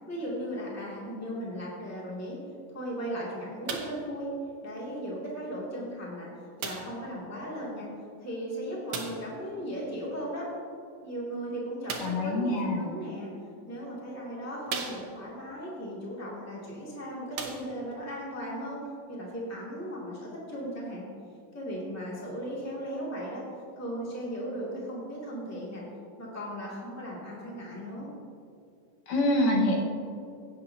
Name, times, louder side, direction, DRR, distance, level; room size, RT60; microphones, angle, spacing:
voice 1, 0.0-4.3 4.6-7.9 8.2-10.5 11.0-13.3 13.7-18.8 19.1-21.1 21.5-23.5 23.8-25.8 26.2-28.1, equal, 5° left, -6 dB, 1.9 m, -37 dB
sound 1, 3.7-4.1 5.0-5.1 6.6-7.0 8.9-9.3 11.8-12.3 13.3-13.4 14.0-14.1 14.7-15.4 16.6-16.7 17.3-18.0 18.8-18.9, right 5 dB, 70° right, 1.3 m, -37 dB
voice 2, 12.0-12.9 29.1-29.8, left 1 dB, 80° left, -2 dB, 3.1 m, -25 dB
16.5 x 8.6 x 2.9 m, 2.4 s
omnidirectional pair, 3.8 m